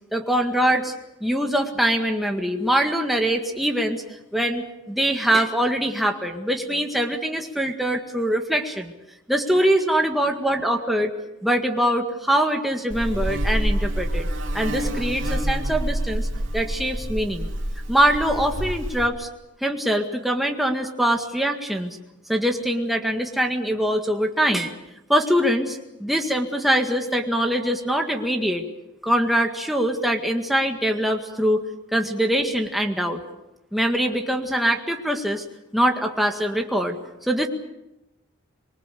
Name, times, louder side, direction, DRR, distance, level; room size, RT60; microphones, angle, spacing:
voice 1, 0.1-0.9 1.2-4.0 4.3-8.9 9.3-11.1 11.4-14.3 14.5-16.3 16.5-17.5 17.9-19.3 19.6-22.0 22.3-24.7 25.1-28.6 29.0-31.6 31.9-33.2 33.7-35.4 35.7-37.5, right 1 dB, ahead, 2 dB, 1.8 m, -23 dB
Buzz, 12.9-19.1, right 1 dB, 75° right, 2.9 m, -27 dB
25.0 x 23.5 x 6.8 m, 0.91 s
head